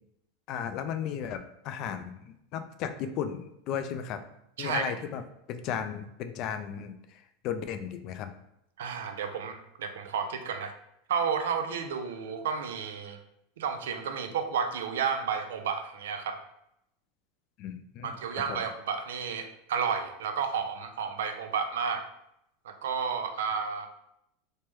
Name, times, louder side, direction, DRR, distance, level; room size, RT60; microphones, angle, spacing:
voice 1, 0.5-4.2 4.6-5.2 5.5-6.9 7.4-8.3 17.6-18.1 18.5-18.6, left 8 dB, 50° left, 9 dB, 0.3 m, -35 dB
voice 2, 4.6-4.9 8.8-10.7 11.1-13.2 13.6-16.4 18.0-22.0 22.6-23.9, right 6 dB, 85° right, 7 dB, 0.4 m, -32 dB
3.1 x 2.1 x 3.2 m, 0.79 s
hypercardioid pair, 110°, 0 cm